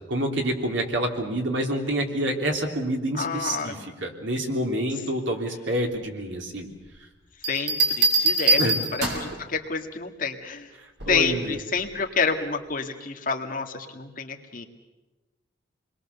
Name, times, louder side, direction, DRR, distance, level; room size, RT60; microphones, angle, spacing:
voice 1, 0.1-6.7 8.6-8.7 11.0-11.6, right 1 dB, 80° right, 2 dB, 3.3 m, -27 dB
voice 2, 3.2-3.8 7.5-8.6 8.9-10.7 11.1-14.6, left 5 dB, 45° left, 2 dB, 2.0 m, -28 dB
sound 1, 7.4-9.4 11.0-11.3, right 2 dB, 60° right, 5.2 m, -23 dB
28.0 x 21.5 x 7.0 m, 1.2 s
head